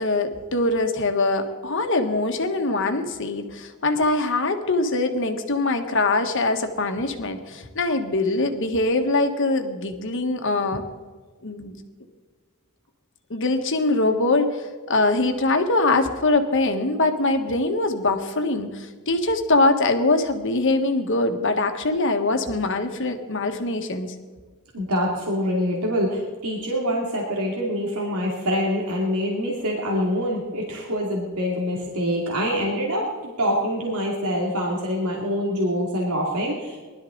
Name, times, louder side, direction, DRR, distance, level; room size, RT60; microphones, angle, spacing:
voice 1, 0.0-10.8 11.4-11.8 13.3-24.1, left 2 dB, 60° left, 6 dB, 1.4 m, -23 dB
voice 2, 24.7-36.8, equal, 90° right, -2 dB, 2.6 m, -25 dB
20.0 x 12.5 x 3.9 m, 1.4 s
head